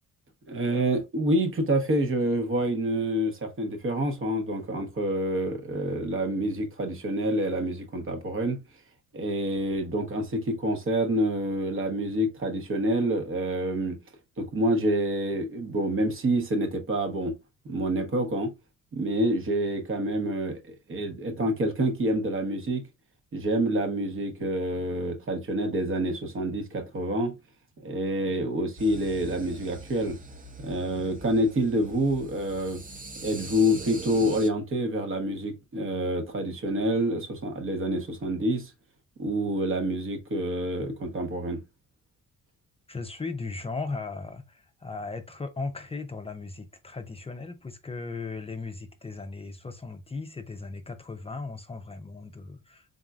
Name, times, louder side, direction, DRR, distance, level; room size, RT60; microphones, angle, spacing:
voice 1, 0.5-8.6 9.1-14.0 14.4-17.4 17.6-18.5 18.9-22.8 23.3-27.3 27.8-30.2 30.6-32.8 33.2-38.7 39.2-41.6, right 1 dB, 45° right, 1.1 m, -27 dB
sound 1, 28.8-34.5, right 3 dB, 25° right, 0.8 m, -42 dB
voice 2, 42.9-52.9, left 3 dB, 20° left, 0.5 m, -37 dB
4.0 x 3.6 x 2.3 m
cardioid pair, 90°, 30 cm